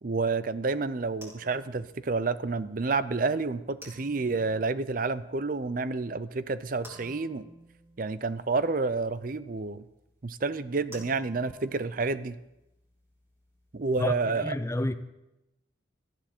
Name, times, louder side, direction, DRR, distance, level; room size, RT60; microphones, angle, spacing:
voice 1, 0.0-7.4 8.0-9.8 10.2-12.4 13.7-14.6, right 3 dB, 45° right, 0.5 m, -29 dB
sound 1, 0.6-14.1, equal, 15° right, 3.7 m, -55 dB
voice 2, 14.4-14.9, left 1 dB, 15° left, 0.6 m, -28 dB
18.5 x 13.0 x 4.4 m
head